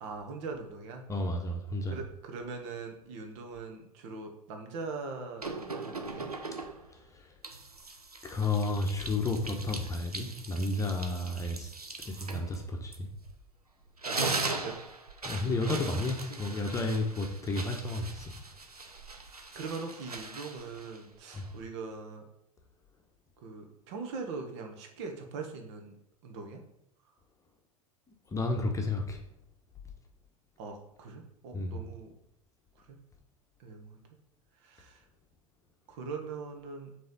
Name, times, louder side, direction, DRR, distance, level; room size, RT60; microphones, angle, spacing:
voice 1, 0.0-1.1 1.9-6.3 11.2-11.4 14.0-14.8 15.4-15.8 16.3-16.7 19.5-22.2 23.4-25.9 26.2-26.6 30.6-32.1 32.9-33.0 33.6-34.0 34.6-35.0 35.9-36.9, right 4 dB, 50° right, 4 dB, 1.4 m, -41 dB
voice 2, 1.1-1.9 7.1-7.3 8.2-11.7 12.0-13.1 15.2-18.3 21.3-21.4 28.3-29.2 31.5-31.8, left 2 dB, 15° left, 3 dB, 1.1 m, -32 dB
sound 1, 5.4-6.9 7.4-13.5 13.8-21.7, right 3 dB, 85° right, 0.7 m, -40 dB
7.6 x 3.4 x 5.5 m, 0.79 s
figure-of-eight pair, 85°, 19 cm